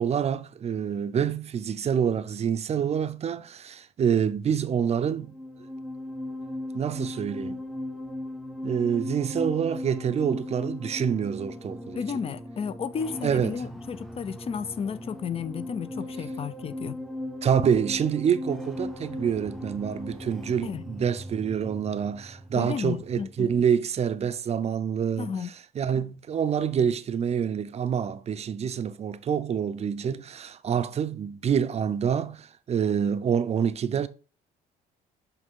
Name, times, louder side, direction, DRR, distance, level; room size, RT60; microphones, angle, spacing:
voice 1, 0.0-5.3 6.7-7.6 8.6-12.0 13.2-13.5 17.4-25.3 25.8-34.1, right 8 dB, 40° right, 0.6 m, -27 dB
sound 1, 5.1-23.5, left 1 dB, ahead, 0.7 m, -38 dB
voice 2, 11.9-17.0 20.6-20.8 22.5-23.5 25.2-25.5, left 6 dB, 35° left, 0.6 m, -33 dB
8.0 x 3.3 x 3.7 m
cardioid pair, 110°, 17 cm